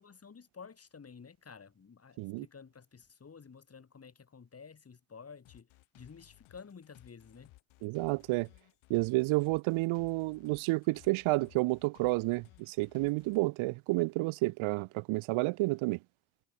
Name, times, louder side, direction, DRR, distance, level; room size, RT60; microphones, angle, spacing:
voice 1, 0.0-7.5, left 5 dB, 30° left, 6.0 m, -52 dB
sound 1, 5.4-13.5, left 20 dB, 75° left, 6.0 m, -60 dB
voice 2, 7.8-8.5 8.9-16.0, right 23 dB, 75° right, 1.5 m, -30 dB
supercardioid pair, 95°, 48 cm